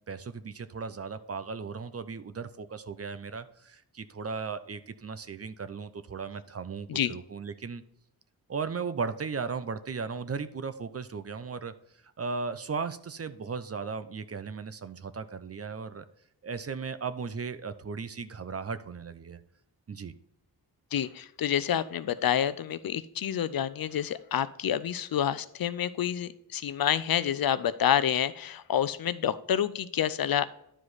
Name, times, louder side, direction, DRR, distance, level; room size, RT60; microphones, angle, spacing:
voice 1, 0.1-7.8 8.5-11.7 12.2-16.0 16.4-19.4 19.9-20.1, right 5 dB, 40° right, 13 dB, 0.6 m, -36 dB
voice 2, 20.9-30.4, left 9 dB, 70° left, 15 dB, 0.5 m, -28 dB
11.0 x 4.9 x 4.1 m, 0.76 s
wide cardioid pair, 110°, 37 cm